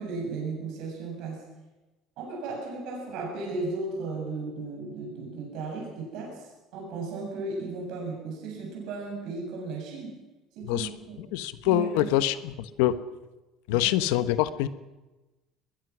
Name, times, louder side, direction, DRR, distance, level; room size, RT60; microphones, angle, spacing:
voice 1, 0.0-1.4 2.2-10.2 10.6-11.2 11.6-12.1 13.7-13.9, right 3 dB, 70° right, -1 dB, 7.7 m, -35 dB
voice 2, 11.3-13.0 13.7-14.7, left 13 dB, 90° left, 13 dB, 1.1 m, -25 dB
21.5 x 21.0 x 6.2 m, 1.1 s
cardioid pair, 120°, 0 cm